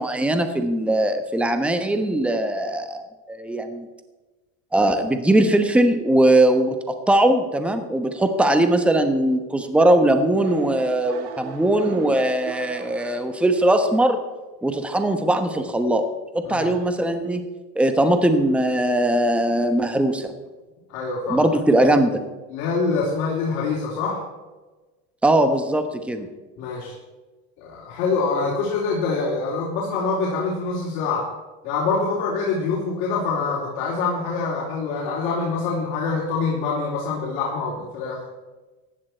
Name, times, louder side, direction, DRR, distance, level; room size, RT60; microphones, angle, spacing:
voice 1, 0.0-3.9 4.7-6.8 7.1-14.2 14.6-16.0 16.3-17.4 17.7-20.3 21.3-22.2 25.2-26.3, right 1 dB, 5° right, 8 dB, 1.0 m, -20 dB
sound 1, 10.3-13.9, right 6 dB, 70° right, 1.8 m, -38 dB
voice 2, 20.9-21.4 22.5-24.2 26.6-26.9 27.6-31.3 31.6-38.2, left 4 dB, 65° left, -4 dB, 3.5 m, -25 dB
15.0 x 10.5 x 4.4 m, 1.2 s
supercardioid pair, 120°, 41 cm